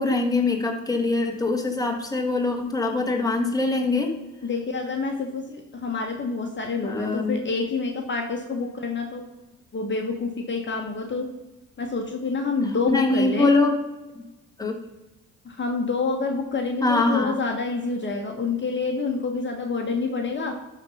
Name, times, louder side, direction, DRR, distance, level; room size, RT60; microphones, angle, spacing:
voice 1, 0.0-4.1 6.8-7.4 12.9-13.8 14.6-14.8 16.8-17.4, left 3 dB, 10° left, 2 dB, 1.8 m, -23 dB
voice 2, 4.4-9.2 9.7-11.3 11.8-13.5 15.4-20.5, left 4 dB, 40° left, 2 dB, 1.2 m, -27 dB
12.0 x 4.2 x 5.5 m, 1.1 s
cardioid pair, 90°, 30 cm